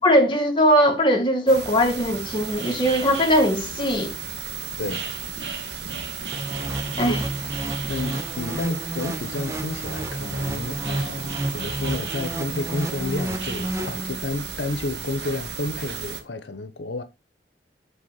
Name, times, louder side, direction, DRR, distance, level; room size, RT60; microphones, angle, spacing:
voice 1, 0.0-4.1 7.0-7.2, equal, 25° left, 1.7 m, -20 dB
sound 1, 1.5-16.2, right 6 dB, 80° right, 1.3 m, -34 dB
voice 2, 4.8-5.1 6.9-7.2 7.9-17.0, left 2 dB, 85° left, 0.9 m, -31 dB
sound 2, 6.3-14.5, right 1 dB, 15° right, 0.9 m, -31 dB
8.1 x 4.2 x 5.7 m
head